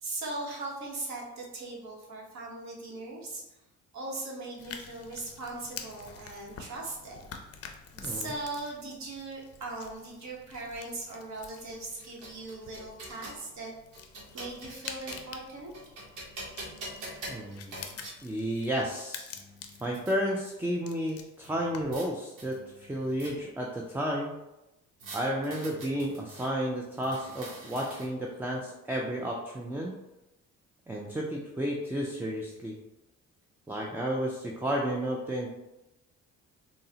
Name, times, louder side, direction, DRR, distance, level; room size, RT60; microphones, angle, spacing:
voice 1, 0.0-3.4 3.9-7.3 8.0-13.7 14.3-15.7, right 2 dB, 65° right, -2 dB, 1.0 m, -39 dB
sound 1, 4.6-22.1, left 6 dB, 50° left, 0.5 m, -48 dB
voice 2, 7.9-8.3 17.3-17.8 18.2-19.3 19.8-24.4 25.1-29.9 30.9-32.7 33.7-35.5, equal, 5° right, -1 dB, 0.3 m, -32 dB
sound 2, 11.7-13.4 13.9-15.4 15.7-18.2 18.9-19.0 19.3-20.1 21.4-22.1 22.4-23.6 25.0-26.5 27.0-28.3, right 1 dB, 90° right, 0.9 m, -45 dB
3.7 x 2.0 x 2.7 m, 0.96 s
cardioid pair, 90°, 30 cm